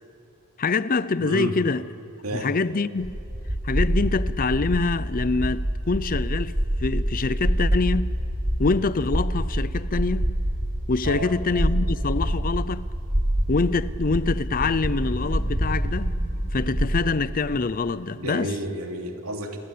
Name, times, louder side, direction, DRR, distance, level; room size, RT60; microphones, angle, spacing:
voice 1, 0.6-1.9 2.3-3.1 3.6-6.5 6.8-8.1 8.6-10.3 10.9-12.9 13.5-16.1 16.5-18.5, left 3 dB, 40° left, 0.6 m, -25 dB
voice 2, 1.2-1.6 2.2-2.5 11.0-11.3 18.2-19.6, right 1 dB, 80° right, 3.0 m, -30 dB
sound 1, 3.0-17.0, equal, 45° right, 6.7 m, -26 dB
29.0 x 22.0 x 8.6 m
head